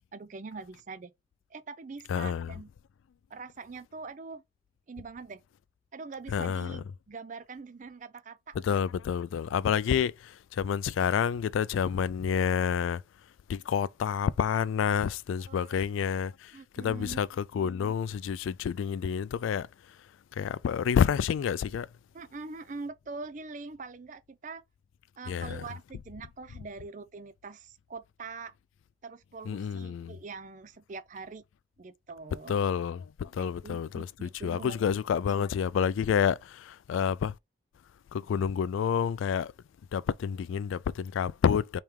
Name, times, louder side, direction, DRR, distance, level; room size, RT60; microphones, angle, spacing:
voice 1, 0.1-1.1 1.5-2.7 3.3-4.4 4.9-5.4 5.9-8.6 15.5-15.8 16.5-17.2 22.1-24.6 25.2-28.5 29.0-31.4 31.8-32.6 33.4-34.9 35.4-35.5, right 4 dB, 40° right, 0.4 m, -43 dB
voice 2, 2.1-2.6 6.3-6.8 8.6-13.0 13.5-16.5 16.8-19.7 20.3-21.9 25.3-25.6 29.5-30.2 32.5-37.3 38.1-39.5 39.9-41.8, left 7 dB, 80° left, 0.3 m, -29 dB
3.6 x 3.3 x 4.5 m
head